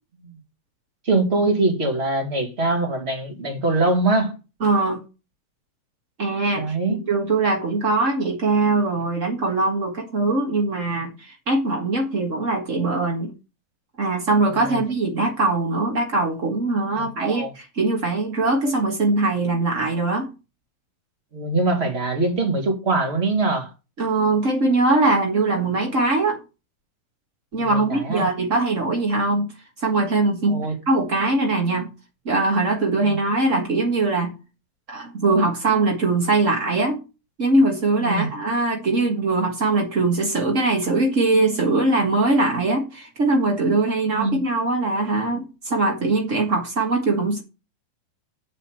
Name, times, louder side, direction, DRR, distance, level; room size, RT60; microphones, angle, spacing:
voice 1, 1.0-4.4 6.5-7.0 14.6-14.8 16.9-17.5 21.3-23.7 27.6-28.3 30.5-30.7 33.0-33.2 38.0-38.3 44.1-44.4, right 2 dB, 30° right, 1.1 m, -23 dB
voice 2, 4.6-5.0 6.2-13.3 14.0-20.3 24.0-26.4 27.5-29.5 29.8-31.9 32.2-34.3 34.9-37.0 37.4-47.4, right 2 dB, 75° right, 0.7 m, -21 dB
8.1 x 5.2 x 7.6 m
omnidirectional pair, 4.4 m